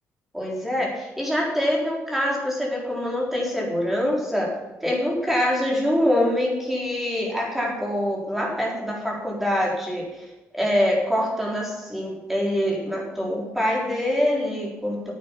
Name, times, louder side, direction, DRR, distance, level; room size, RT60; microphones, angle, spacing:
voice 1, 0.3-4.6 4.8-15.1, left 1 dB, 5° right, -2 dB, 3.9 m, -25 dB
9.8 x 8.9 x 7.4 m, 1.0 s
cardioid pair, 135°, 5 cm